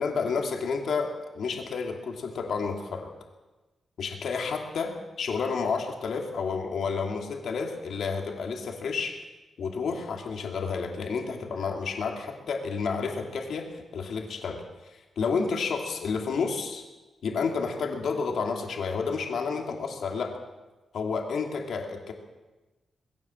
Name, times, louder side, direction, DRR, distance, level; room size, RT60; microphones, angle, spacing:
voice 1, 0.0-3.1 4.0-9.2 9.6-16.8 17.2-20.4 20.9-22.1, left 5 dB, 70° left, 2 dB, 2.9 m, -30 dB
21.0 x 16.5 x 7.7 m, 1.1 s
wide cardioid pair, 145°, 0 cm